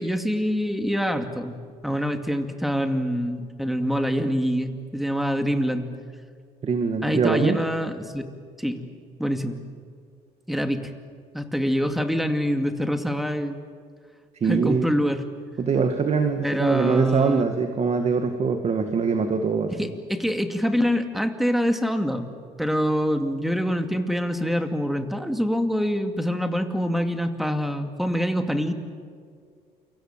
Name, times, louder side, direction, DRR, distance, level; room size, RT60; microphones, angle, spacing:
voice 1, 0.0-1.6 1.8-5.9 7.0-8.3 8.6-8.8 9.2-9.6 10.5-10.9 11.3-13.6 14.4-15.2 16.4-17.4 19.7-22.3 22.6-28.7, equal, ahead, 6 dB, 2.4 m, -25 dB
voice 2, 6.6-7.6 14.4-14.9 15.6-19.9, right 5 dB, 40° right, 6 dB, 2.0 m, -23 dB
29.0 x 25.0 x 7.5 m, 2.1 s
cardioid pair, 110°, 17 cm